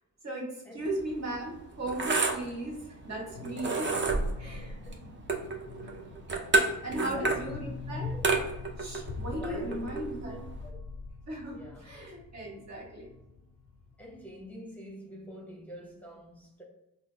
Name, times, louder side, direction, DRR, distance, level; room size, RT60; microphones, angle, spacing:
voice 1, 0.2-4.7 5.8-5.9 6.8-8.1 8.8-10.3 11.3-13.1, right 1 dB, 50° right, 1.2 m, -37 dB
sound 1, 0.8-10.7, right 3 dB, 30° right, 0.6 m, -31 dB
sound 2, 3.4-14.5, left 4 dB, 40° left, 0.4 m, -43 dB
voice 2, 4.9-5.2 6.9-7.5 8.1-8.3 9.4-10.8 11.5-11.8 14.0-16.6, equal, 5° left, 0.8 m, -45 dB
3.8 x 2.0 x 3.2 m
cardioid pair, 80°, 35 cm